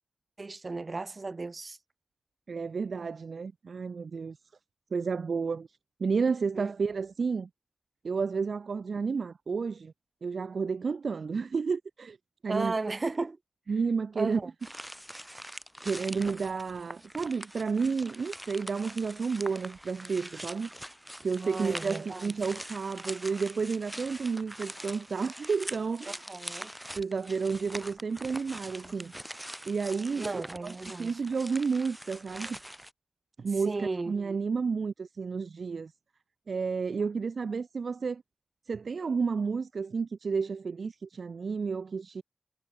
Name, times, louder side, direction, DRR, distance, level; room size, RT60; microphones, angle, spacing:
voice 1, 0.4-1.8 6.5-6.7 12.5-13.4 14.2-14.5 21.4-22.2 26.1-26.7 30.2-31.1 33.7-34.1, right 3 dB, 50° right, 3.6 m, -34 dB
voice 2, 2.5-4.4 4.9-5.7 6.0-7.5 8.0-9.9 10.2-12.2 12.4-12.7 13.7-14.4 15.8-20.7 21.2-26.2 27.0-29.1 29.6-32.6 33.4-35.9 36.5-38.2 38.7-42.2, right 5 dB, 80° right, 1.6 m, -31 dB
sound 1, 14.6-32.9, equal, 5° right, 4.6 m, -43 dB
cardioid pair, 55°, 0 cm